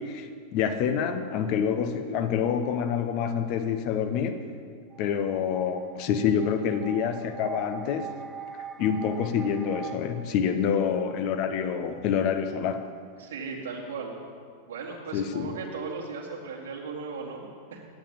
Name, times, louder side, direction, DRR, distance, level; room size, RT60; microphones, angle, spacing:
voice 1, 0.0-4.5 5.0-8.1 8.5-12.9 15.1-15.5, left 7 dB, 45° left, 8 dB, 0.8 m, -27 dB
sound 1, 4.9-10.0, right 7 dB, 20° right, 0.8 m, -42 dB
voice 2, 13.2-14.1 14.7-17.8, right 4 dB, 60° right, -1 dB, 2.1 m, -37 dB
10.0 x 8.4 x 7.1 m, 2.2 s
figure-of-eight pair, 90°, 0 cm